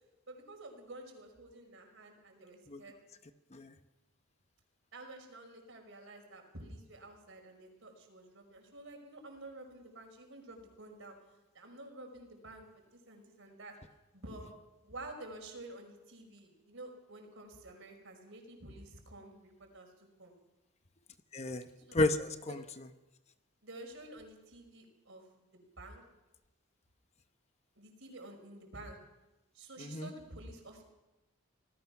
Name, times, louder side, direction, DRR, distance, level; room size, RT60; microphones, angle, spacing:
voice 1, 0.3-3.0 4.9-11.1 11.5-13.7 14.1-14.5 14.8-20.3 21.8-22.0 23.6-25.2 25.5-26.0 27.8-29.0 29.5-30.8, right 2 dB, 60° right, 4 dB, 5.4 m, -50 dB
voice 2, 21.3-22.6 29.8-30.1, left 2 dB, 30° left, 9 dB, 0.8 m, -32 dB
28.0 x 19.0 x 6.0 m, 1.0 s
head